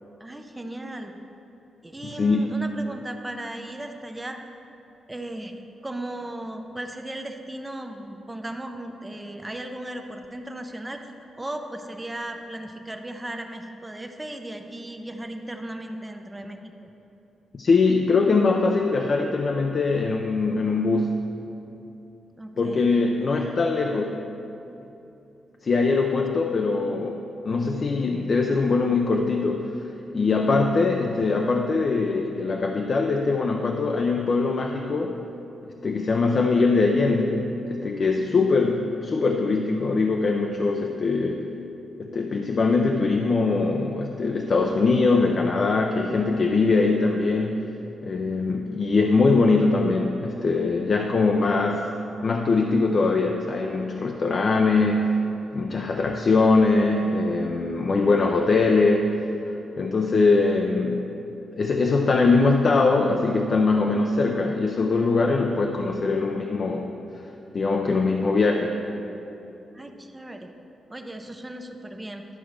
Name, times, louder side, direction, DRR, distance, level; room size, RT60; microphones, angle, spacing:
voice 1, 0.2-1.1 1.8-4.4 5.1-5.5 5.8-11.0 11.4-16.9 22.4-22.9 69.7-70.5 70.9-72.3, right 1 dB, 10° right, 5 dB, 0.6 m, -36 dB
voice 2, 2.2-2.5 17.5-21.1 22.6-24.2 25.6-29.7 30.1-35.2 35.8-41.5 42.0-47.7 48.0-51.9 52.2-55.2 55.5-59.1 59.5-61.2 61.5-66.9 67.5-68.7, left 3 dB, 40° left, 2 dB, 0.5 m, -22 dB
11.0 x 4.5 x 6.4 m, 2.9 s
wide cardioid pair, 140°, 0 cm